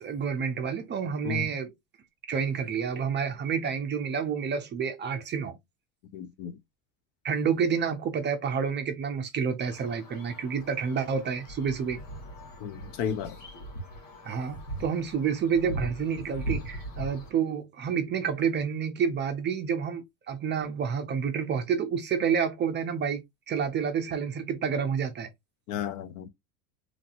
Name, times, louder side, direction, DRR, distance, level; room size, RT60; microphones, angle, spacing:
voice 1, 0.0-1.7 2.3-5.6 7.2-12.0 14.2-23.2 23.5-25.3, right 6 dB, 25° right, 0.4 m, -29 dB
voice 2, 6.1-6.6 12.6-13.4 25.7-26.3, left 8 dB, 55° left, 0.6 m, -33 dB
sound 1, 9.6-17.3, right 1 dB, 85° left, 1.7 m, -40 dB
3.1 x 2.6 x 2.5 m
supercardioid pair, 110°, 44 cm